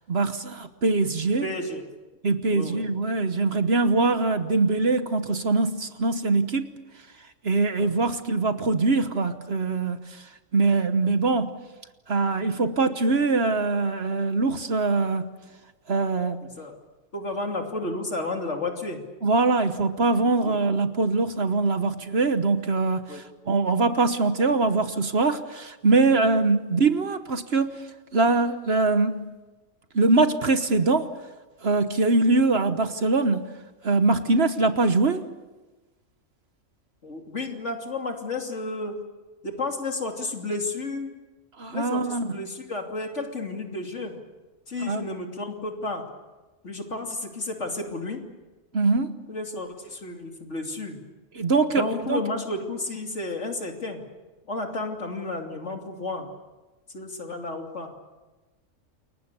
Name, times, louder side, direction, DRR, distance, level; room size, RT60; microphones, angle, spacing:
voice 1, 0.1-1.5 2.2-6.8 7.4-10.2 10.5-11.5 12.1-15.3 15.9-16.4 19.2-27.8 28.1-29.2 29.9-31.1 31.6-33.5 33.8-35.2 41.6-42.4 44.8-45.1 48.7-49.2 51.3-52.2, right 3 dB, 50° right, 10 dB, 1.3 m, -23 dB
voice 2, 1.4-1.8 2.5-2.9 7.8-8.1 16.4-16.8 17.1-19.0 20.4-20.6 23.1-23.2 37.0-39.0 39.4-41.1 41.7-44.2 44.7-46.0 46.6-48.2 49.3-51.0 51.7-54.0 54.5-56.3 56.9-57.9, left 2 dB, 60° left, 2 dB, 3.2 m, -32 dB
29.0 x 22.5 x 6.9 m, 1.2 s
omnidirectional pair, 1.4 m